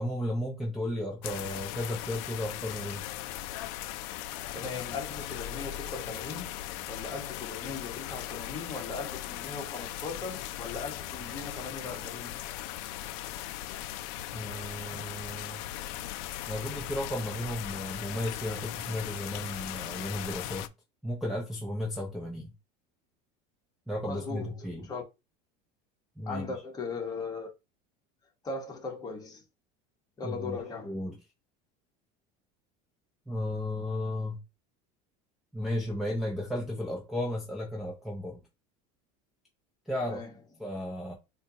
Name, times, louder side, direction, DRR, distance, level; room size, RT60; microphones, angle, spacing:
voice 1, 0.0-3.0 14.3-15.7 16.5-20.7 21.0-22.5 23.9-24.9 26.2-26.4 30.2-30.6 30.8-31.2 33.3-34.4 35.5-38.4 39.9-40.2 40.6-41.1, left 1 dB, ahead, 0.8 m, -34 dB
sound 1, 1.2-20.7, left 13 dB, 65° left, 0.4 m, -38 dB
voice 2, 4.5-6.5 6.9-12.4 14.9-15.0 24.1-25.0 26.2-27.5 28.4-29.4 30.2-31.0 40.0-40.3, left 4 dB, 20° left, 1.3 m, -38 dB
4.2 x 2.4 x 2.8 m
supercardioid pair, 135°, 19 cm